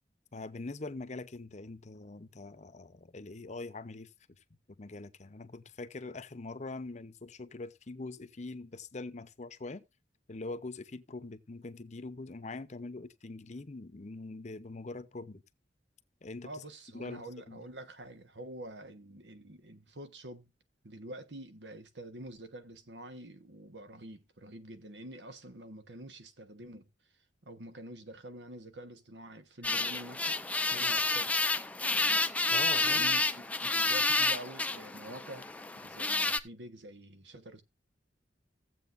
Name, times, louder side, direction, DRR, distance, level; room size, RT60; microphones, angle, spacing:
voice 1, 0.3-4.1 4.7-9.8 10.3-15.4 16.2-16.5 16.9-17.6 32.5-33.0, left 3 dB, 40° left, 0.8 m, -43 dB
voice 2, 16.4-20.5 20.8-26.9 27.4-30.4 30.7-31.4 32.8-35.5 35.8-37.6, right 1 dB, 90° right, 1.3 m, -47 dB
sound 1, 29.6-36.4, left 3 dB, 10° left, 0.5 m, -30 dB
15.5 x 7.8 x 2.6 m
head